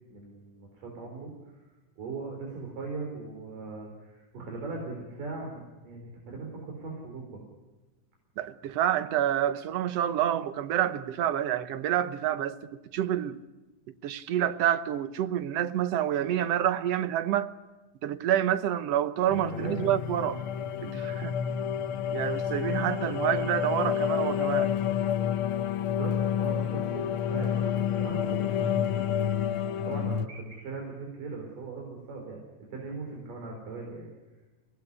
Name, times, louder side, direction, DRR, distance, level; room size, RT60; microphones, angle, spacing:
voice 1, 0.1-1.6 2.0-7.4 19.5-19.7 26.0-29.0 29.8-32.4 32.7-34.1, right 3 dB, 85° right, 5.9 m, -39 dB
voice 2, 8.4-12.6 12.9-13.4 14.0-17.5 18.0-20.4 20.8-21.3 22.1-24.7, right 11 dB, 65° right, 1.7 m, -28 dB
sound 1, 19.3-30.3, left 9 dB, 85° left, 1.1 m, -29 dB
24.5 x 18.5 x 9.7 m
omnidirectional pair, 3.7 m